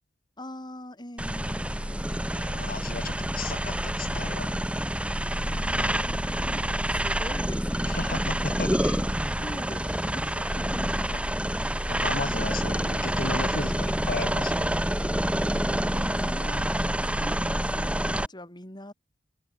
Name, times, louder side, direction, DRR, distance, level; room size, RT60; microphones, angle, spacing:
voice 1, 0.4-2.4 5.3-8.7 9.4-11.4 15.4-16.7 17.0-18.9, left 1 dB, 25° left, 7.4 m, -43 dB
sound 1, 1.2-18.3, right 1 dB, 5° right, 2.5 m, -27 dB
voice 2, 2.3-4.5 7.8-9.0 11.9-14.7, left 3 dB, 55° left, 2.0 m, -35 dB
head